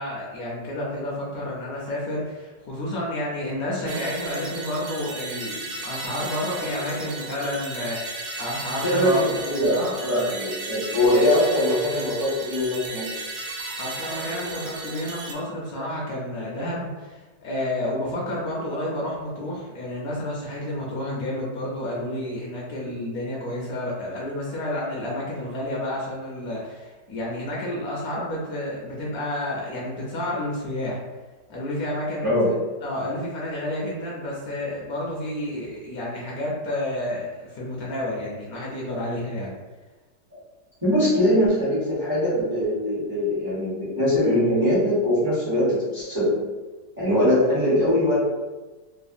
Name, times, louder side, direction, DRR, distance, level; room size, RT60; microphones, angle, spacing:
voice 1, 0.0-9.3 9.7-10.0 13.8-31.0 31.5-32.5 32.8-39.5, left 1 dB, 70° left, -4 dB, 1.0 m, -30 dB
sound 1, 3.9-15.3, right 2 dB, 75° right, 1.2 m, -34 dB
voice 2, 8.8-13.1 32.2-32.5 40.8-46.4 47.0-48.2, left 1 dB, 20° right, -10 dB, 0.6 m, -22 dB
3.2 x 2.1 x 2.5 m, 1.2 s
omnidirectional pair, 1.9 m